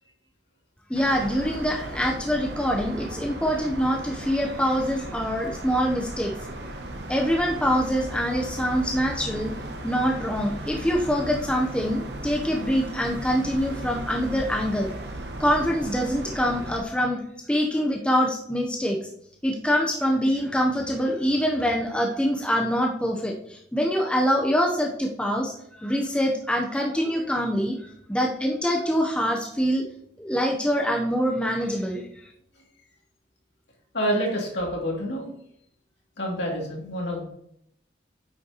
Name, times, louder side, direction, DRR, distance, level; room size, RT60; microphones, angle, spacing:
voice 1, 0.9-6.3 7.1-9.5 9.8-14.9 15.4-17.2 17.5-19.0 19.4-29.8 30.2-32.1, equal, 5° left, 0 dB, 0.7 m, -25 dB
sound 1, 0.9-16.8, right 1 dB, 60° right, 1.0 m, -36 dB
voice 2, 33.9-35.3 36.2-37.2, equal, 65° left, -1 dB, 2.4 m, -27 dB
8.8 x 6.2 x 2.9 m, 0.71 s
head